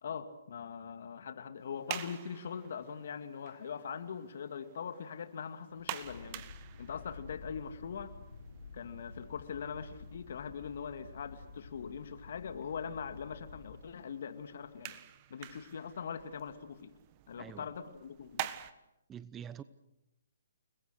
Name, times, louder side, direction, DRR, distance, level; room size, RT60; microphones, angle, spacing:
voice 1, 0.0-6.5 6.8-8.2 8.7-15.0 15.3-16.9 17.3-18.6, left 7 dB, 60° left, 9 dB, 2.3 m, -42 dB
sound 1, 1.6-18.7, right 14 dB, 35° right, 1.5 m, -48 dB
sound 2, 6.0-13.8, left 4 dB, 75° left, 4.0 m, -51 dB
voice 2, 17.4-17.7 19.1-19.6, right 8 dB, 15° right, 16 dB, 0.8 m, -45 dB
30.0 x 21.0 x 6.5 m, 0.87 s
figure-of-eight pair, 135°, 0 cm